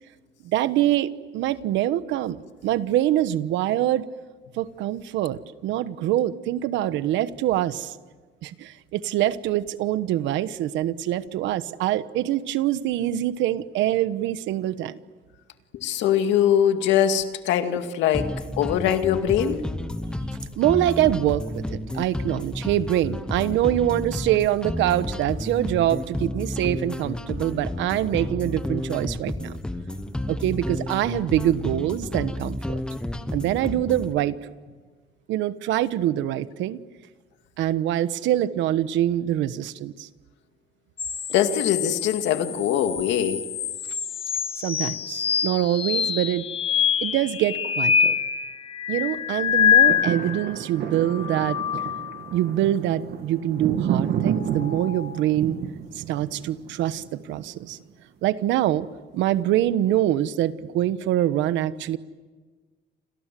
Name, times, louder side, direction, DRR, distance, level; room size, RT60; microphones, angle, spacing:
voice 1, 0.4-2.4 2.6-4.1 4.6-7.9 8.4-15.0 20.6-29.5 30.3-32.8 33.3-34.4 35.3-36.8 37.6-40.1 44.6-46.4 47.0-48.1 48.9-51.6 52.3-55.6 55.9-57.8 58.2-58.9 59.1-62.0, right 12 dB, 90° right, 14 dB, 1.2 m, -24 dB
voice 2, 15.8-18.3 18.6-19.6 41.3-43.4, left 10 dB, 85° left, 7 dB, 2.1 m, -22 dB
sound 1, 18.1-34.1, left 1 dB, 5° left, 1.1 m, -31 dB
sound 2, 41.0-50.5 51.0-52.4 54.2-55.3, left 8 dB, 30° left, 0.9 m, -25 dB
sound 3, 49.5-57.7 58.3-58.4, right 8 dB, 60° right, 1.5 m, -31 dB
29.0 x 26.5 x 7.7 m, 1.4 s
cardioid pair, 170°, 19 cm